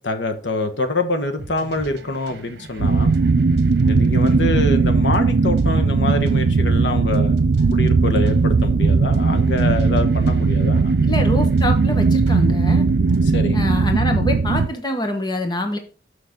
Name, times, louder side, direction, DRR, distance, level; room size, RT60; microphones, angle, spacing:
voice 1, 0.0-3.1 3.9-7.4 7.7-11.0 13.2-13.7, left 2 dB, 75° left, 1.2 m, -25 dB
sound 1, 1.4-13.4, right 2 dB, 60° right, 1.2 m, -39 dB
sound 2, 2.8-14.7, right 4 dB, 75° right, 0.5 m, -18 dB
voice 2, 11.0-12.8 13.5-15.8, left 1 dB, 25° left, 1.1 m, -25 dB
6.6 x 6.6 x 3.6 m
head